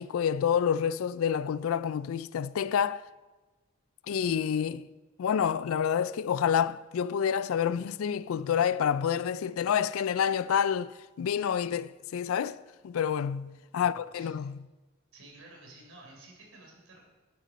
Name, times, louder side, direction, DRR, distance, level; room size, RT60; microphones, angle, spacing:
voice 1, 0.0-3.0 4.1-4.9 5.2-12.6 12.8-14.6, left 8 dB, 80° left, 0.3 m, -28 dB
voice 2, 15.1-17.0, right 2 dB, 85° right, 3.7 m, -52 dB
12.0 x 9.3 x 4.2 m
head